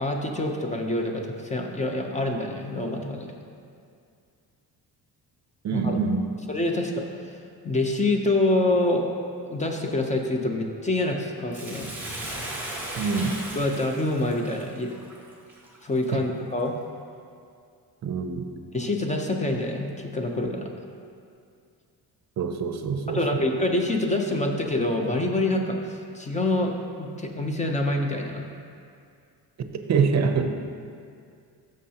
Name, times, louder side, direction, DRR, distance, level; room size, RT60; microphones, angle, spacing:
voice 1, 0.0-3.3 5.7-6.0 6.5-7.1 7.6-9.1 9.4-11.9 13.5-15.0 15.8-16.7 18.7-20.7 23.1-28.5, left 2 dB, 20° left, 2 dB, 0.6 m, -26 dB
voice 2, 5.6-6.3 13.0-13.4 16.1-16.2 18.0-18.5 22.4-23.5 29.7-30.5, right 5 dB, 45° right, 6 dB, 0.6 m, -25 dB
Bathtub (filling or washing), 11.5-16.1 16.6-16.7, right 1 dB, 5° right, 1.2 m, -36 dB
13.0 x 6.4 x 2.8 m, 2.3 s
cardioid pair, 155°, 39 cm